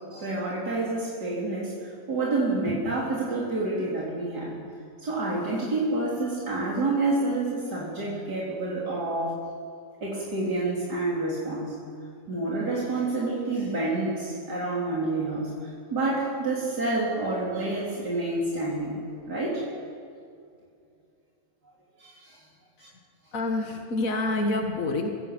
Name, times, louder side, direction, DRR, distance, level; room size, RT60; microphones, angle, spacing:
voice 1, 0.1-4.6 5.0-9.4 10.0-11.8 12.3-15.5 15.9-19.0 19.3-19.6 21.7-21.8 22.0-22.4, right 2 dB, 90° right, -5 dB, 4.0 m, -28 dB
voice 2, 23.3-25.1, left 2 dB, 55° left, 3 dB, 2.0 m, -27 dB
26.0 x 16.0 x 7.9 m, 2.2 s
omnidirectional pair, 1.7 m